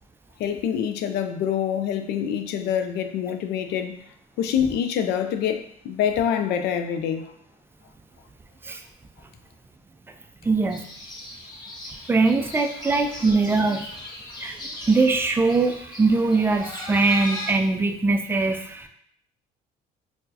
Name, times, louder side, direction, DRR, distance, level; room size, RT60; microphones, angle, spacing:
voice 1, 0.4-4.0 4.4-7.3, left 8 dB, 75° left, 8 dB, 0.4 m, -26 dB
voice 2, 10.4-10.8 12.1-13.8 14.4-14.6 14.9-18.9, right 3 dB, 15° right, 5 dB, 0.3 m, -21 dB
sound 1, 10.7-17.5, left 2 dB, 25° left, 0.7 m, -38 dB
4.3 x 2.1 x 2.7 m, 0.68 s
cardioid pair, 110°, 17 cm